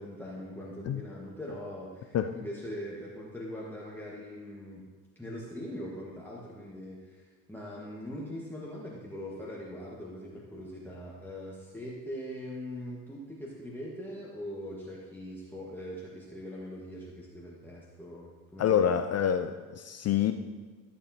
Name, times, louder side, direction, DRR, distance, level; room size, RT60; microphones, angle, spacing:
voice 1, 0.0-4.8 5.1-18.9, equal, 5° left, -5 dB, 1.5 m, -41 dB
voice 2, 18.6-20.3, left 9 dB, 35° left, 7 dB, 0.4 m, -27 dB
14.0 x 6.8 x 2.9 m, 1.3 s
hypercardioid pair, 70°, 49 cm